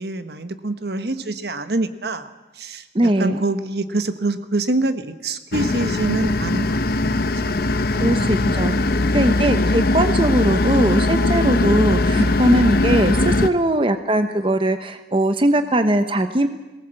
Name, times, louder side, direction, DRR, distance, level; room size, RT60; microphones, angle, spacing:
voice 1, 0.0-2.3 2.5-9.2 12.1-12.4, right 2 dB, 65° right, 10 dB, 1.2 m, -26 dB
voice 2, 2.9-3.4 8.0-16.5, right 1 dB, 30° right, 9 dB, 0.9 m, -20 dB
sound 1, 5.5-13.5, left 2 dB, 55° left, 0.8 m, -20 dB
21.5 x 18.5 x 7.7 m, 1.1 s
head